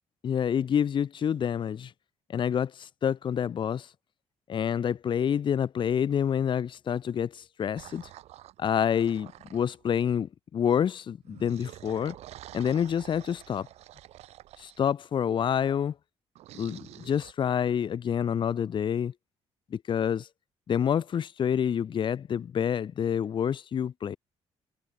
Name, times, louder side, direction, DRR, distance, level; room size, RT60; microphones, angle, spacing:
voice 1, 0.2-1.9 2.3-3.9 4.5-8.1 8.6-12.2 12.5-13.7 14.6-15.9 16.6-19.1 19.7-20.3 20.7-24.2, left 8 dB, 50° left, 1.1 m, -28 dB
sound 1, 7.8-10.1 11.2-14.8 16.3-17.3, right 14 dB, 80° right, 5.3 m, -49 dB
cardioid pair, 100°, 11 cm